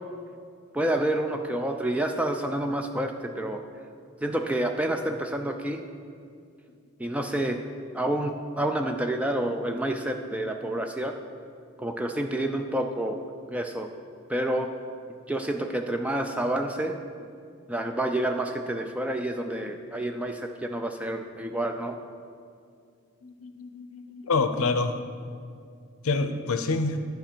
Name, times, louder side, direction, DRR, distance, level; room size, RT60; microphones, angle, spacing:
voice 1, 0.7-3.6 4.2-5.8 7.0-7.6 7.9-11.1 11.8-13.2 13.5-13.9 14.3-14.7 15.3-16.9 17.7-22.0, right 1 dB, 5° right, 4 dB, 0.3 m, -28 dB
voice 2, 23.2-24.9 26.0-27.0, left 3 dB, 75° left, 9 dB, 0.6 m, -27 dB
11.5 x 5.3 x 4.4 m, 2.3 s
head